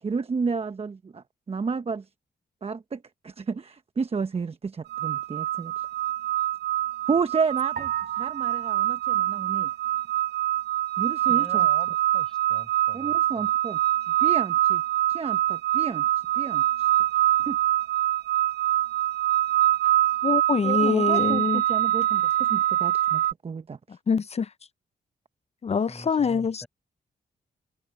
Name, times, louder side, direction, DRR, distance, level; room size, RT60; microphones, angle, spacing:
voice 1, 0.0-2.0 2.6-5.9 7.1-9.7 11.0-11.7 12.9-13.8 14.2-14.8 15.1-16.1 16.3-16.9 17.4-17.6 20.6-23.8, right 5 dB, 35° right, 1.0 m, -31 dB
sound 1, 4.9-23.3, right 14 dB, 80° right, 0.8 m, -24 dB
sound 2, 7.8-10.2, right 7 dB, 65° right, 5.8 m, -43 dB
voice 2, 11.3-13.5 19.8-19.9 25.9-26.7, equal, 5° left, 5.8 m, -45 dB
voice 3, 20.2-21.6 24.1-24.5 25.6-26.6, left 6 dB, 40° left, 0.6 m, -24 dB
open air
cardioid pair, 75°, 17 cm